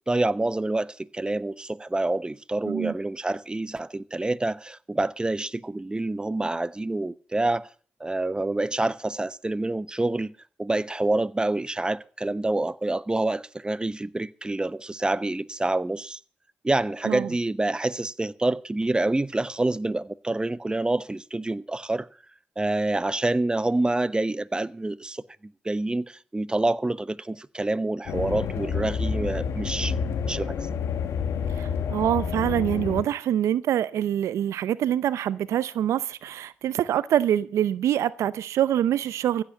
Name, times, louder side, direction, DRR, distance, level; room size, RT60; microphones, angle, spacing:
voice 1, 0.1-7.7 8.0-10.3 10.6-16.2 16.6-22.1 22.6-25.2 25.6-29.9 30.2-30.7, right 2 dB, 20° right, 0.9 m, -27 dB
sound 1, 28.1-33.0, left 6 dB, 75° left, 1.7 m, -29 dB
voice 2, 31.6-39.4, right 11 dB, 80° right, 0.7 m, -25 dB
15.5 x 8.8 x 6.9 m
supercardioid pair, 50°, 5 cm